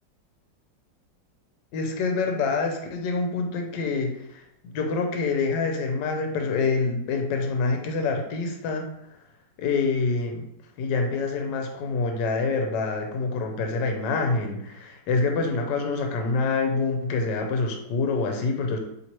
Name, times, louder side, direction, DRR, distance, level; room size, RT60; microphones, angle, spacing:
voice 1, 1.7-4.4 4.7-8.9 9.6-10.4 10.8-18.8, left 4 dB, 75° left, 3 dB, 1.3 m, -26 dB
4.2 x 3.2 x 3.0 m, 0.80 s
omnidirectional pair, 2.0 m